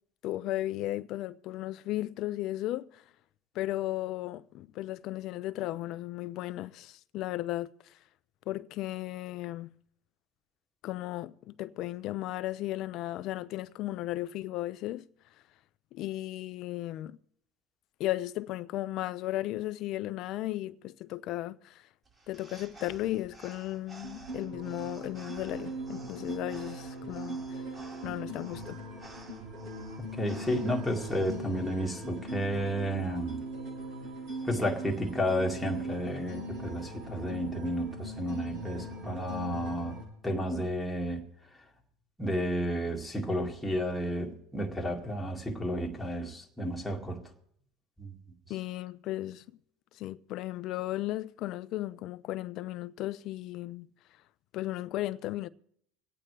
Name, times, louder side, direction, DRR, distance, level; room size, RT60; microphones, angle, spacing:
voice 1, 0.2-3.0 3.5-7.7 8.5-9.7 10.8-15.1 15.9-17.2 18.0-21.8 22.3-27.4 28.0-28.8 48.5-49.4 49.9-53.9 54.5-55.5, left 15 dB, 55° left, 0.5 m, -35 dB
sound 1, 22.0-31.3, right 3 dB, 25° right, 4.5 m, -53 dB
sound 2, 24.0-40.0, right 1 dB, 65° right, 6.6 m, -40 dB
voice 2, 30.1-33.4 34.4-40.0 40.2-41.2 42.2-47.2 48.0-48.1, equal, ahead, 2.0 m, -32 dB
26.0 x 8.8 x 3.3 m
supercardioid pair, 100°, 0 cm